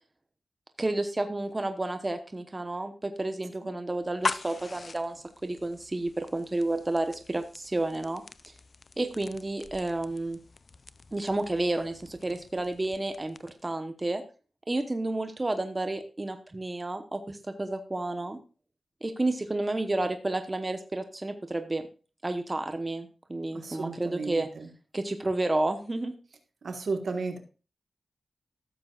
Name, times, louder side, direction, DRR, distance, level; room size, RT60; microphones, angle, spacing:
voice 1, 0.8-8.2 9.0-10.4 11.1-14.2 14.7-18.4 19.0-21.9 22.2-24.5 24.9-26.1, right 2 dB, 25° right, 7 dB, 1.0 m, -31 dB
sound 1, 4.0-13.7, left 4 dB, 50° left, 0.4 m, -41 dB
voice 2, 23.5-24.7 26.6-27.4, right 4 dB, 70° right, 5 dB, 1.5 m, -34 dB
14.0 x 7.6 x 2.4 m, 0.34 s
cardioid pair, 65°, 0 cm